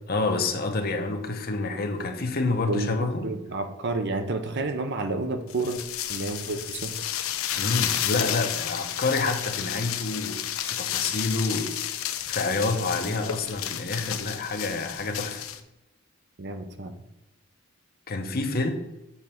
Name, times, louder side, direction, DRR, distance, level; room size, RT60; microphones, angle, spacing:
voice 1, 0.1-3.3 7.5-11.8 12.3-15.4 18.1-18.7, left 3 dB, 45° left, 0.9 m, -28 dB
voice 2, 2.7-5.8 6.1-7.0 16.4-16.9, right 2 dB, 55° right, 0.8 m, -30 dB
sound 1, 5.5-15.6, left 11 dB, 80° left, 0.6 m, -31 dB
7.1 x 4.0 x 5.9 m
head